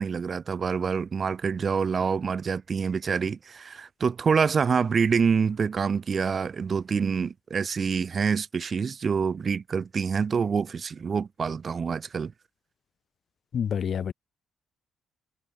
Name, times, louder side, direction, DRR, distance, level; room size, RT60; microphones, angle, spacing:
voice 1, 0.0-12.3, right 6 dB, 45° right, 1.0 m, -26 dB
voice 2, 13.5-14.1, left 8 dB, 55° left, 1.4 m, -27 dB
cardioid pair, 90°, 0 cm